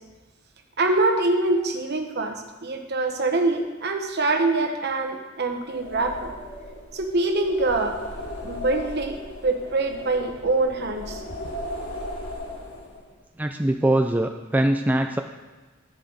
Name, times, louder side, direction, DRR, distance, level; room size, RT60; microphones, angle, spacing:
voice 1, 0.8-6.3 6.9-8.0 8.4-9.2 9.4-11.2, right 2 dB, 55° right, 4 dB, 1.2 m, -24 dB
sound 1, 5.6-13.2, left 1 dB, 90° left, 2.5 m, -37 dB
voice 2, 13.4-15.2, right 1 dB, 10° right, 5 dB, 0.3 m, -22 dB
10.0 x 9.9 x 4.1 m, 1.2 s
head